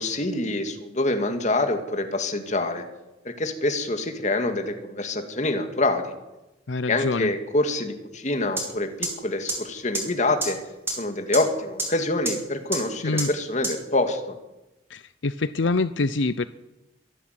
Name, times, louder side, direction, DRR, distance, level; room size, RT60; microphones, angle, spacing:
voice 1, 0.0-2.8 3.2-6.1 6.9-10.6 11.0-14.4, left 2 dB, 40° left, 6 dB, 2.5 m, -26 dB
voice 2, 6.7-7.3 13.0-13.3 14.9-16.5, left 3 dB, 80° left, 14 dB, 0.7 m, -25 dB
sound 1, 8.6-8.7 9.0-9.1 9.5-9.6 9.9-10.0 10.4-10.5 10.9-11.0 11.3-11.4 11.8-11.9 12.3-12.4 12.7-12.8 13.2-13.3 13.6-13.7, right 2 dB, 15° right, 5.9 m, -25 dB
24.0 x 11.5 x 9.6 m, 1.0 s
head